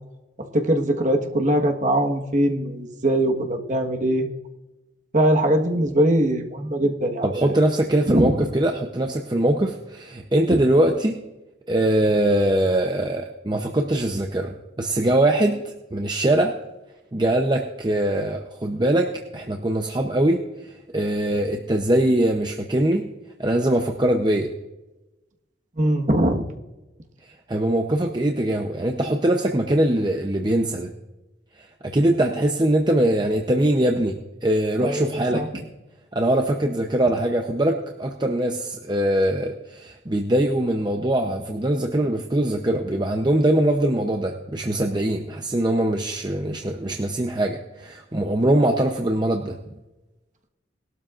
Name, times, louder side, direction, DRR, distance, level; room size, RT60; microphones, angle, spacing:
voice 1, 0.5-4.3 5.1-7.5 8.1-8.5 25.8-26.5 34.8-35.5, right 1 dB, 40° right, 3 dB, 1.4 m, -21 dB
voice 2, 7.2-11.1 11.7-16.5 17.1-20.4 20.9-23.1 23.4-24.5 27.5-30.9 31.8-35.4 36.1-49.6, right 1 dB, 25° right, 3 dB, 0.7 m, -22 dB
20.5 x 12.5 x 2.5 m, 1.0 s
head